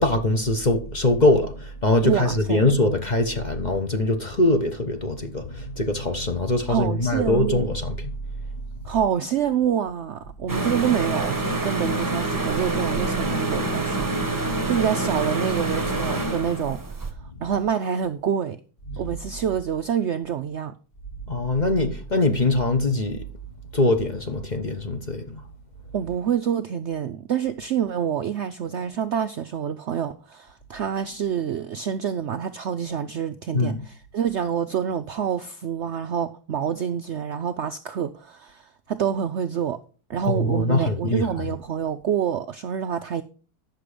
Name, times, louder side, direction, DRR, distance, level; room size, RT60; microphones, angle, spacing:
voice 1, 0.0-8.1 18.9-19.0 21.3-23.2 23.7-25.2 33.5-33.8 40.3-41.5, left 2 dB, 30° left, 1.1 m, -22 dB
voice 2, 2.0-2.6 6.7-7.7 8.8-16.8 17.4-18.6 19.0-20.7 25.9-39.8 40.1-43.2, right 8 dB, 70° right, 0.6 m, -27 dB
sound 1, 10.5-17.1, right 2 dB, 15° right, 1.2 m, -26 dB
10.5 x 6.7 x 5.0 m
omnidirectional pair, 1.8 m